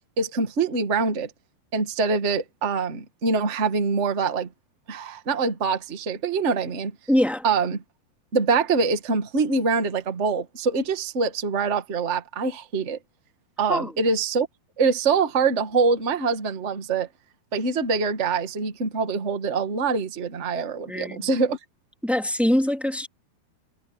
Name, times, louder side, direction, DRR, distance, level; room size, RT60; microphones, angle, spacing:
voice 1, 0.2-1.3 1.7-4.5 4.9-6.9 7.4-7.8 8.3-13.0 13.6-14.5 14.8-17.1 17.5-21.6, right 4 dB, 30° right, 1.4 m, -24 dB
voice 2, 7.1-7.4 13.7-13.9 20.8-21.3 22.0-23.1, left 1 dB, ahead, 1.8 m, -23 dB
omnidirectional pair, 4.6 m